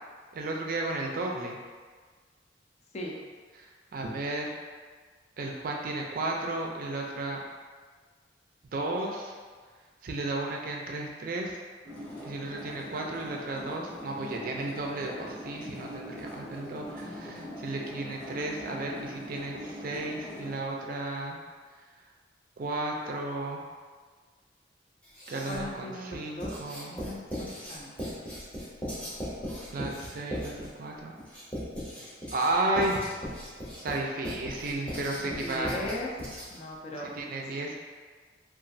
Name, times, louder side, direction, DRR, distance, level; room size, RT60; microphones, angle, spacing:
voice 1, 0.3-1.6 3.6-4.5 5.4-7.4 8.7-9.3 10.0-11.6 12.2-21.4 22.6-23.6 25.3-26.9 29.7-31.1 32.3-33.0 33.8-35.7 37.0-37.8, right 2 dB, 50° right, 0 dB, 0.4 m, -33 dB
sound 1, 11.8-20.6, equal, 60° left, 1.1 m, -42 dB
voice 2, 17.0-17.4 25.5-26.6 26.9-28.0 35.2-36.1 36.5-37.1, left 1 dB, 40° left, -1 dB, 0.4 m, -38 dB
Writing, 25.0-25.8 26.4-36.7, equal, 5° left, 0.7 m, -38 dB
2.9 x 2.4 x 2.6 m, 1.5 s
head